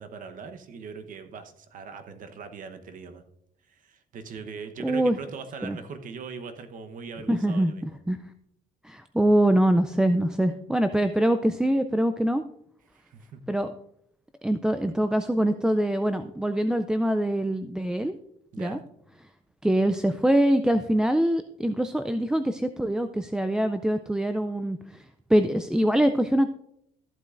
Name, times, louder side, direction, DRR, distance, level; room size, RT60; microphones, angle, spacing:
voice 1, 0.0-3.2 3.7-8.0 12.9-13.4 18.5-18.8, right 5 dB, 50° right, 8 dB, 1.0 m, -41 dB
voice 2, 4.8-5.2 5.6-5.8 7.3-8.2 8.8-12.4 13.5-13.7 14.4-18.1 18.6-18.8 19.6-25.0 25.3-26.5, right 1 dB, 5° right, 7 dB, 0.3 m, -24 dB
14.0 x 8.3 x 2.5 m, 0.76 s
cardioid pair, 110°, 17 cm